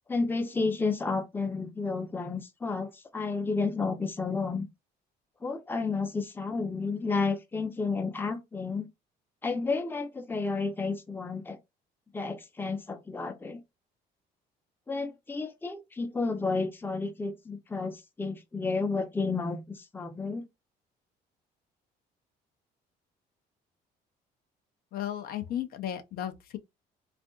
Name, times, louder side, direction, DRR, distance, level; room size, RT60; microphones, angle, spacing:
voice 1, 0.1-4.6 5.4-8.9 9.4-11.6 12.1-13.6 14.9-20.4, left 4 dB, 10° left, 0.6 m, -31 dB
voice 2, 24.9-26.6, left 11 dB, 65° left, 0.6 m, -34 dB
3.5 x 2.5 x 2.3 m
cardioid pair, 110°, 17 cm